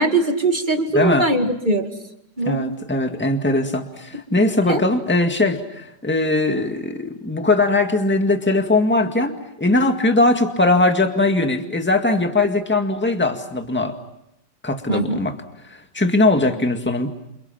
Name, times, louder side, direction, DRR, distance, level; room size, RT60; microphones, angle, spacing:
voice 1, 0.0-1.9 2.4-2.6 4.7-4.8 14.9-15.2, right 2 dB, 25° right, 5 dB, 2.2 m, -21 dB
voice 2, 0.9-1.3 2.5-14.0 14.6-15.4 15.9-17.1, left 2 dB, 5° left, 5 dB, 1.9 m, -20 dB
29.5 x 29.0 x 5.9 m, 0.80 s
omnidirectional pair, 2.0 m